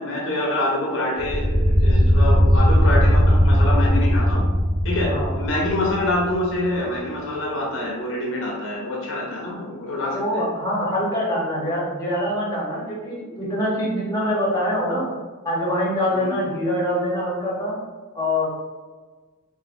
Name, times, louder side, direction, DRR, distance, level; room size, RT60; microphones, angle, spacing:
voice 1, 0.0-4.5 4.8-10.4 14.2-14.3 16.1-16.4, left 1 dB, 60° left, -2 dB, 0.6 m, -26 dB
sound 1, 1.2-6.5, equal, 20° right, 0.4 m, -18 dB
voice 2, 10.1-15.1 15.4-17.8 18.1-18.5, left 1 dB, 15° left, -6 dB, 0.8 m, -24 dB
3.1 x 2.1 x 2.5 m, 1.3 s
head